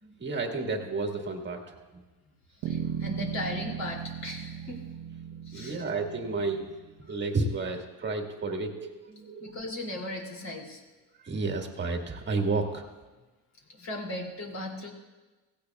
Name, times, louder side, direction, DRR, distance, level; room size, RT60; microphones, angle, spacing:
voice 1, 0.2-2.0 5.5-6.7 7.1-9.6 11.2-12.9, right 3 dB, 25° right, 3 dB, 1.6 m, -31 dB
voice 2, 2.6-4.8 5.5-5.8 9.1-10.8 13.7-14.9, left 1 dB, 40° left, 0 dB, 2.8 m, -37 dB
sound 1, 2.6-7.0, right 8 dB, 85° right, 1.1 m, -37 dB
16.5 x 16.5 x 2.3 m, 1.2 s
cardioid pair, 120°, 43 cm